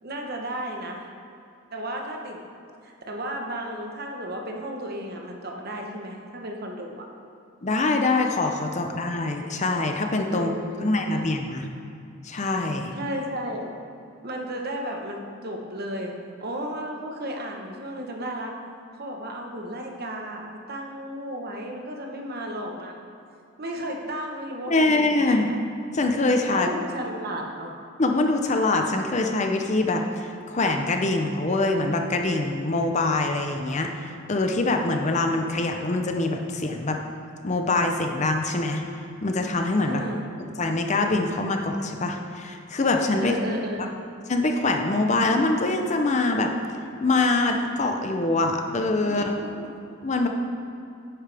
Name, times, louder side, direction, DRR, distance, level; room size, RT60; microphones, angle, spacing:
voice 1, 0.0-1.1 1.7-2.4 2.8-7.1 8.8-8.9 10.3-11.2 12.9-13.7 14.2-18.5 19.0-23.1 23.6-25.6 26.5-27.8 39.8-40.2 43.2-43.9 49.0-49.7, equal, 45° right, 1 dB, 1.1 m, -34 dB
voice 2, 7.6-10.5 10.8-11.7 12.2-12.9 24.7-25.6 25.9-26.7 28.0-37.0 37.4-38.8 39.2-40.0 40.6-43.3 44.3-46.5 47.0-49.3 50.0-50.3, left 2 dB, 35° left, 4 dB, 0.6 m, -24 dB
10.5 x 8.7 x 3.4 m, 2.6 s
head